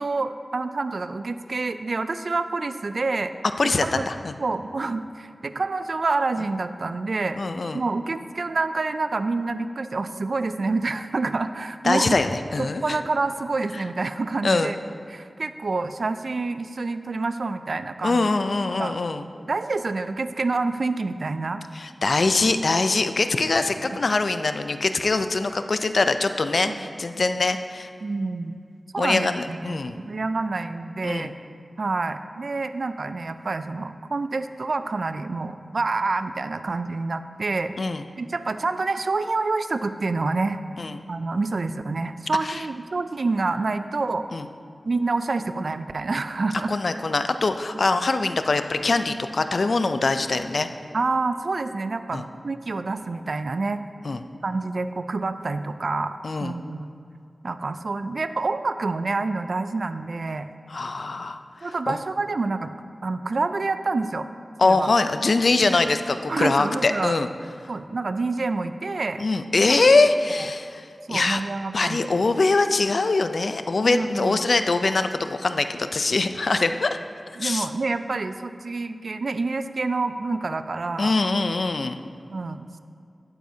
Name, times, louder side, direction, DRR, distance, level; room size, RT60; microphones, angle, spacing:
voice 1, 0.0-3.3 3.8-4.0 4.4-7.4 7.7-12.2 12.6-14.8 15.1-18.3 18.8-19.0 19.5-21.6 26.8-26.9 28.0-28.6 28.9-29.8 30.0-31.3 31.8-37.7 38.2-40.6 41.1-44.3 44.9-46.7 47.9-48.0 50.9-53.8 54.4-56.9 57.4-60.5 61.6-62.7 63.0-64.3 64.6-64.9 66.3-67.1 67.7-69.2 71.1-72.1 73.9-74.4 77.4-81.1 82.3-82.8, right 3 dB, 70° right, 10 dB, 0.4 m, -27 dB
voice 2, 3.6-4.3 7.4-7.8 11.8-13.0 13.7-13.8 14.4-14.7 18.0-19.3 21.7-27.9 29.0-30.0 31.0-31.3 37.8-38.0 40.8-41.0 42.4-42.6 44.3-44.5 46.7-50.7 52.1-52.2 54.0-54.2 56.2-56.5 60.7-62.0 64.6-67.3 69.2-71.4 71.7-77.0 77.4-77.7 81.0-82.0, left 3 dB, 70° left, 9 dB, 0.4 m, -23 dB
11.5 x 9.2 x 2.8 m, 2.4 s
wide cardioid pair, 65°, 0 cm